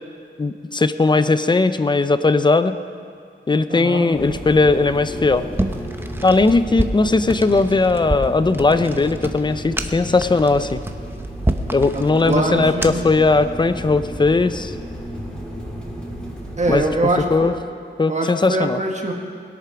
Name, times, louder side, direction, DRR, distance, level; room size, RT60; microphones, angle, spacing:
voice 1, 0.4-2.7 3.5-5.5 6.2-10.8 11.7-14.7 16.7-16.8 17.3-17.5 18.0-18.8, left 3 dB, 25° left, 12 dB, 0.5 m, -18 dB
voice 2, 3.7-4.1 11.9-13.0 16.6-17.5 18.1-19.1, right 2 dB, 35° right, 2 dB, 1.5 m, -23 dB
sound 1, 4.1-17.3, equal, 5° left, 2.7 m, -33 dB
sound 2, 5.5-13.2, right 1 dB, 10° right, 0.7 m, -28 dB
21.0 x 8.7 x 5.8 m, 2.3 s
wide cardioid pair, 145°, 20 cm